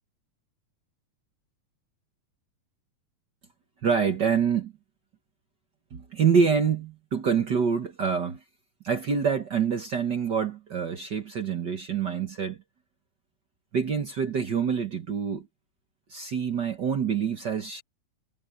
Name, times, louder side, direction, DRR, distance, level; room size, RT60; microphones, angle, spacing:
voice 1, 3.8-4.7 5.9-8.4 8.8-12.6 13.7-15.5 16.1-17.8, right 6 dB, 50° right, 1.4 m, -26 dB
omnidirectional pair, 3.5 m